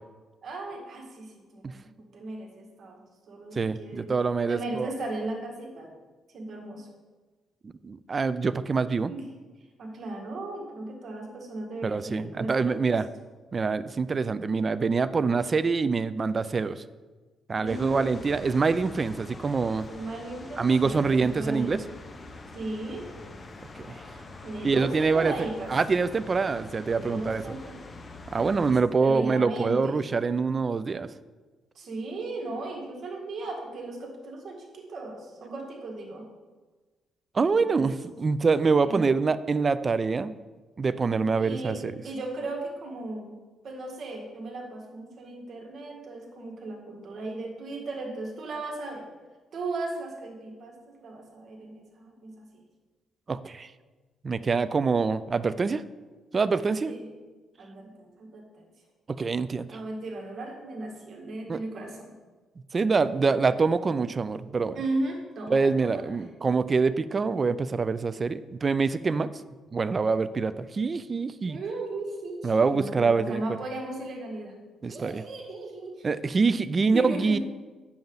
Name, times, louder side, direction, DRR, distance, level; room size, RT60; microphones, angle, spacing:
voice 1, 0.4-3.0 3.3-4.2 4.5-5.9 6.3-6.9 9.1-9.2 9.8-12.9 17.6-18.1 19.8-21.8 22.5-23.1 24.4-25.7 26.9-27.7 29.0-29.9 31.8-36.3 37.5-37.9 38.8-39.1 41.4-41.8 42.0-43.3 43.6-49.0 49.5-52.6 56.9-57.1 57.6-58.7 59.7-62.1 64.7-66.2 71.5-74.6 74.9-76.1 76.8-77.4, right 2 dB, 55° right, 1 dB, 2.0 m, -36 dB
voice 2, 3.5-4.9 7.8-9.1 11.8-13.1 13.5-16.8 17.5-19.9 20.6-21.8 23.9-24.0 24.6-25.3 25.7-27.4 28.3-31.1 37.3-40.3 40.8-41.9 53.3-53.7 54.2-55.8 56.3-56.9 59.1-59.8 61.5-61.6 62.7-64.8 65.5-69.3 69.7-71.6 72.4-73.4 74.8-75.2 76.0-77.4, right 4 dB, 35° right, 15 dB, 0.4 m, -25 dB
sound 1, 17.7-28.8, left 2 dB, 35° left, 0.8 m, -44 dB
8.8 x 7.1 x 4.0 m, 1.3 s
cardioid pair, 90°, 0 cm